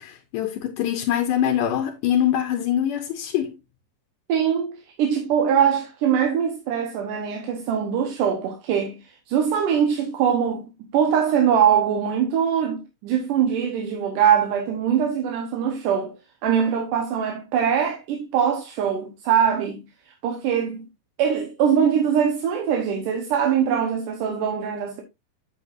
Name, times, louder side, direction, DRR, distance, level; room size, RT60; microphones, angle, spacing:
voice 1, 0.0-3.6, left 10 dB, 75° left, 2.2 m, -24 dB
voice 2, 4.3-10.7 10.9-16.2 16.4-19.9 20.2-20.8 21.2-25.0, right 8 dB, 75° right, 2.5 m, -22 dB
8.0 x 8.0 x 2.5 m
omnidirectional pair, 3.9 m